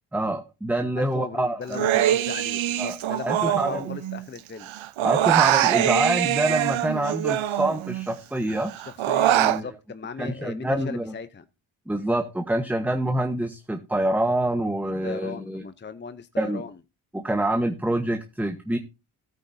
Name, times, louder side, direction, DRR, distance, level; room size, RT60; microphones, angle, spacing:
voice 1, 0.1-2.0 2.8-3.0 3.2-3.9 5.0-8.7 9.3-9.7 10.2-11.1 11.9-15.6 16.4-16.6 17.1-18.8, right 1 dB, 5° right, 6 dB, 1.1 m, -26 dB
voice 2, 1.0-4.7 8.8-11.4 15.0-16.7, left 5 dB, 25° left, 12 dB, 0.7 m, -37 dB
Human voice, 1.7-4.4 4.6-8.1 8.5-9.6, right 12 dB, 80° right, 0.9 m, -23 dB
14.0 x 9.0 x 2.7 m, 0.26 s
cardioid pair, 95°, 47 cm